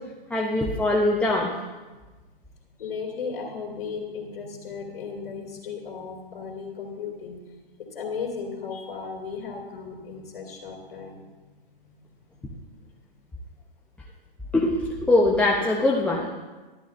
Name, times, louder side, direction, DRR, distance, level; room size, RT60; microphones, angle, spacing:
voice 1, 0.3-1.5 14.5-16.3, left 2 dB, 5° left, -3 dB, 0.7 m, -22 dB
voice 2, 2.8-7.4 7.8-11.2 11.8-12.0 12.4-12.7, left 5 dB, 60° left, -2 dB, 2.5 m, -35 dB
12.5 x 11.0 x 2.5 m, 1.2 s
hypercardioid pair, 120°, 29 cm